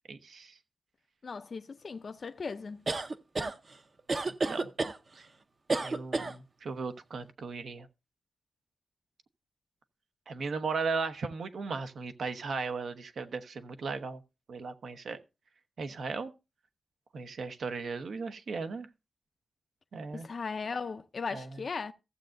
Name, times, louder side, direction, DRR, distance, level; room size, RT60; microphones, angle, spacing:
voice 1, 0.1-0.6 4.3-4.7 5.1-5.3 5.8-7.9 10.3-14.2 14.5-15.2 15.8-16.3 17.1-18.9 19.9-20.3 21.3-21.5, right 4 dB, 75° right, 1.0 m, -36 dB
voice 2, 1.2-2.8 20.1-21.9, left 4 dB, 45° left, 0.4 m, -37 dB
sound 1, 2.9-3.5 4.1-5.0 5.7-6.3, right 3 dB, 35° right, 0.6 m, -30 dB
15.5 x 7.6 x 2.5 m
wide cardioid pair, 180°, 0 cm